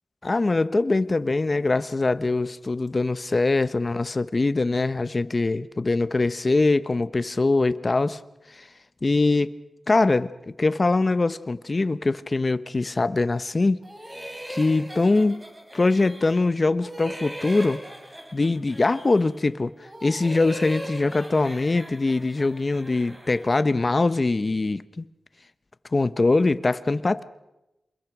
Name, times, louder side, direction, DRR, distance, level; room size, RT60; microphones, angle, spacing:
voice 1, 0.2-8.2 8.6-8.7 9.0-9.5 9.9-13.8 14.5-15.4 15.7-17.8 18.3-19.7 20.0-25.0 25.9-27.2, left 3 dB, 40° left, 13 dB, 1.0 m, -23 dB
sound 1, 13.8-16.5 16.8-19.4 19.8-23.6, equal, 20° right, 4.2 m, -40 dB
27.5 x 22.0 x 6.1 m, 0.98 s
cardioid pair, 60°, 0 cm